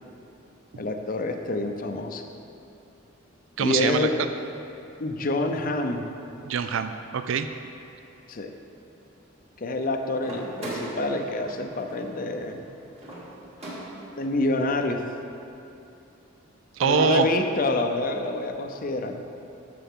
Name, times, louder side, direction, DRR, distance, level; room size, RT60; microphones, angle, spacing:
voice 1, 0.8-2.2 3.6-4.2 5.0-6.0 8.3-8.5 9.6-12.7 14.2-15.0 16.8-19.2, left 2 dB, 45° left, 5 dB, 0.6 m, -27 dB
voice 2, 3.6-4.1 6.5-7.5 16.8-17.3, right 6 dB, 70° right, 9 dB, 0.4 m, -24 dB
sound 1, 10.2-14.3, right 1 dB, 30° right, 2.0 m, -39 dB
12.5 x 6.8 x 3.7 m, 2.8 s
head